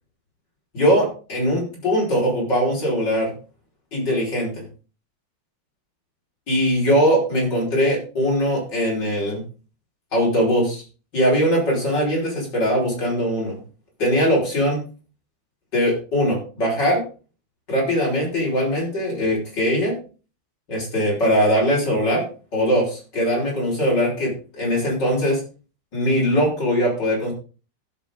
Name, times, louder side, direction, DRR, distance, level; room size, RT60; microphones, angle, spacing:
voice 1, 0.7-3.3 3.9-4.6 6.5-9.4 10.1-10.8 11.1-13.6 14.0-14.8 15.7-17.0 17.7-20.0 20.7-22.3 22.5-25.4 25.9-27.3, equal, 65° left, -4 dB, 5.8 m, -21 dB
15.5 x 7.4 x 3.8 m, 0.36 s
omnidirectional pair, 2.0 m